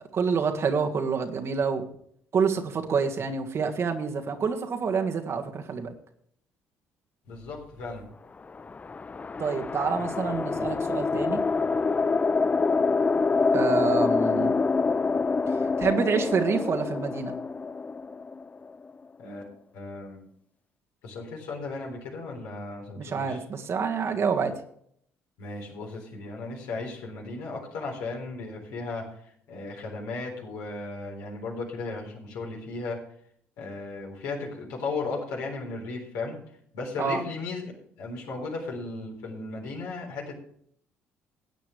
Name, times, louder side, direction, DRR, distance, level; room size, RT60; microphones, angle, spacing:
voice 1, 0.0-1.8 2.3-5.9 9.4-11.4 13.5-14.6 15.8-17.3 23.0-24.5 37.0-37.2, right 5 dB, 45° right, 4 dB, 1.8 m, -27 dB
voice 2, 7.3-8.0 10.6-10.7 19.2-19.4 19.7-20.2 21.0-23.4 25.4-29.1 29.5-33.0 33.6-36.4 36.7-37.7 38.0-40.3, left 3 dB, 70° left, -1 dB, 3.9 m, -35 dB
sound 1, 8.5-18.9, left 4 dB, 25° left, 0.4 m, -26 dB
17.0 x 9.1 x 3.3 m, 0.65 s
hypercardioid pair, 50°, 6 cm